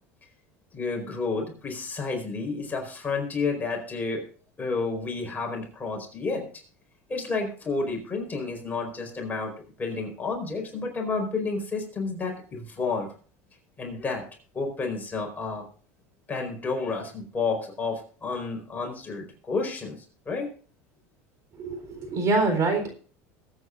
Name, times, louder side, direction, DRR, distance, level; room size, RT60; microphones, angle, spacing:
voice 1, 0.7-4.2 4.6-6.5 7.1-9.5 9.8-13.1 13.8-14.2 14.5-15.6 16.3-20.5, left 4 dB, 20° left, 1 dB, 4.6 m, -30 dB
voice 2, 21.6-22.9, right 3 dB, 40° right, 5 dB, 4.0 m, -25 dB
21.5 x 8.9 x 2.6 m, 0.41 s
supercardioid pair, 110°, 8 cm